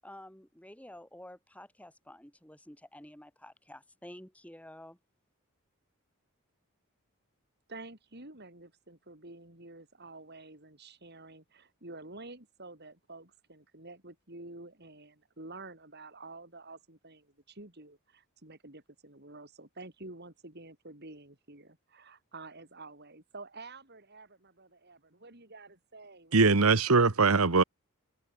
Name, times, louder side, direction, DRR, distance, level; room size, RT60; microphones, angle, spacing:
voice 1, 0.0-5.0, left 1 dB, 5° left, 5.1 m, -50 dB
voice 2, 7.7-27.0, right 2 dB, 50° right, 4.6 m, -49 dB
voice 3, 26.3-27.6, right 4 dB, 80° right, 1.2 m, -22 dB
head